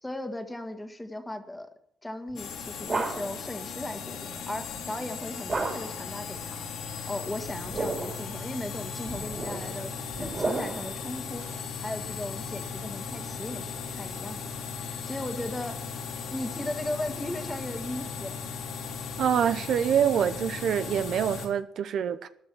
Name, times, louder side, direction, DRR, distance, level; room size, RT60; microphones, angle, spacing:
voice 1, 0.0-1.7 2.0-6.7 7.1-9.9 10.2-15.8 16.3-18.3, left 1 dB, 10° left, 1.7 m, -37 dB
sound 1, 2.3-3.5 5.5-6.1 7.5-8.3 9.1-11.0, right 3 dB, 35° right, 3.4 m, -33 dB
sound 2, 2.4-21.5, left 5 dB, 80° left, 3.7 m, -37 dB
voice 2, 19.2-22.3, right 8 dB, 70° right, 0.7 m, -25 dB
13.5 x 10.0 x 6.1 m
cardioid pair, 90°, 0 cm